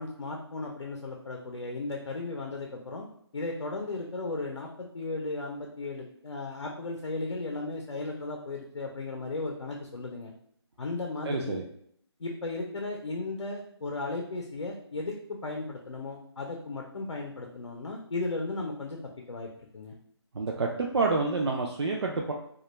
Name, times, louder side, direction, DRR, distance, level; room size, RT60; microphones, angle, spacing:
voice 1, 0.0-3.1 3.3-10.3 10.8-11.6 12.2-19.0 19.3-19.9, left 3 dB, 85° left, 1 dB, 0.5 m, -35 dB
voice 2, 11.3-11.6 20.3-22.3, right 3 dB, 65° right, 0 dB, 0.4 m, -28 dB
2.2 x 2.1 x 3.0 m, 0.66 s
figure-of-eight pair, 160°, 15 cm